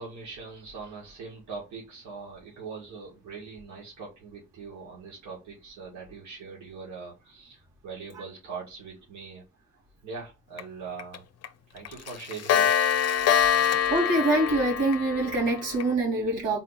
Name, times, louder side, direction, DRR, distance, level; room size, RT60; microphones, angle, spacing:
voice 1, 0.0-9.4 9.7-11.2 11.7-12.9, right 5 dB, 70° right, 2.0 m, -42 dB
Clock, 10.6-10.7 11.0-11.2 11.4-11.5 11.9-15.9, left 8 dB, 55° left, 0.5 m, -25 dB
voice 2, 13.9-16.6, right 2 dB, 90° right, 2.5 m, -25 dB
4.1 x 3.0 x 4.0 m
cardioid pair, 90°, 30 cm